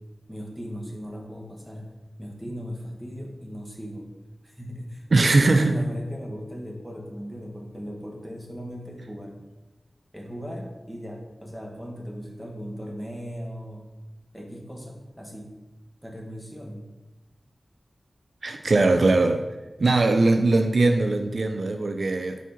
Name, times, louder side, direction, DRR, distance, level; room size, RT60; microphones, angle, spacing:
voice 1, 0.3-1.9 2.2-4.1 4.4-9.4 10.1-13.8 14.3-15.5 16.0-16.8, equal, ahead, -1 dB, 1.2 m, -38 dB
voice 2, 5.1-5.8 18.4-19.4 19.8-22.4, right 2 dB, 65° right, 6 dB, 0.4 m, -20 dB
4.5 x 4.1 x 5.7 m, 1.1 s
wide cardioid pair, 75°, 0 cm